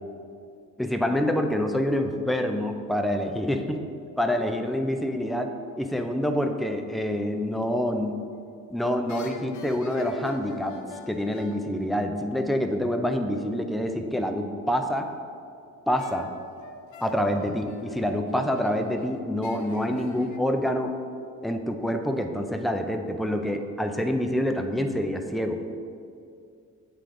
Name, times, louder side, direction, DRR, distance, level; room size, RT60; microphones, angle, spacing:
voice 1, 0.8-3.8 4.2-5.5 5.8-8.1 8.7-10.8 11.1-15.1 15.9-16.3 17.0-20.9 21.4-25.6, equal, ahead, 5 dB, 0.4 m, -27 dB
sound 1, 8.3-8.7 9.1-12.7 16.0-20.4, left 4 dB, 70° left, 0.6 m, -45 dB
7.6 x 3.5 x 3.7 m, 2.4 s
cardioid pair, 90°, 30 cm